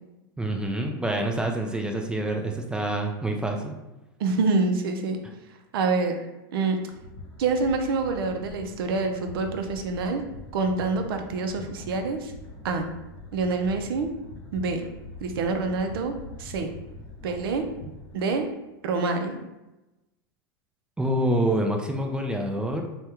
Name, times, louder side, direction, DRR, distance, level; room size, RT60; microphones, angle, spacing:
voice 1, 0.4-3.8 21.0-22.8, right 1 dB, 5° right, 2 dB, 0.3 m, -27 dB
voice 2, 4.2-5.2 5.7-6.1 6.5-6.8 7.4-10.2 10.5-12.3 12.6-12.9 13.3-14.1 14.5-14.8 15.2-16.1 16.4-16.7 17.2-17.6 18.1-18.5 18.8-19.4, right 3 dB, 80° right, 5 dB, 0.5 m, -26 dB
sound 1, 6.8-18.4, left 2 dB, 80° left, 0.9 m, -43 dB
3.4 x 2.2 x 2.8 m, 1.0 s
supercardioid pair, 115°, 12 cm